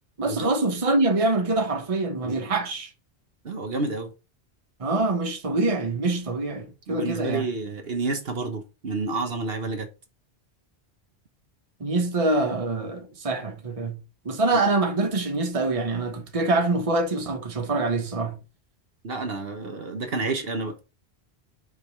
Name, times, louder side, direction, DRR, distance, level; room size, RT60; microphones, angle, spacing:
voice 1, 0.2-2.9 4.8-7.5 11.8-14.0 14.2-18.4, right 2 dB, 30° right, 1.1 m, -25 dB
voice 2, 3.4-4.1 6.9-9.9 19.0-20.8, right 3 dB, 60° right, 1.3 m, -29 dB
5.4 x 5.0 x 4.7 m
omnidirectional pair, 1.1 m